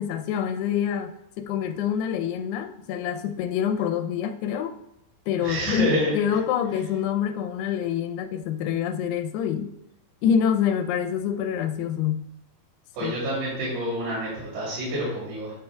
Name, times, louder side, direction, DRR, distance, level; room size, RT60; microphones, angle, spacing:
voice 1, 0.0-4.7 5.3-9.7 10.2-12.3 13.0-13.1, left 8 dB, 85° left, 7 dB, 2.6 m, -26 dB
voice 2, 5.4-6.1 12.9-15.5, right 1 dB, 90° right, -9 dB, 4.9 m, -28 dB
11.5 x 5.5 x 2.3 m, 0.82 s
omnidirectional pair, 4.7 m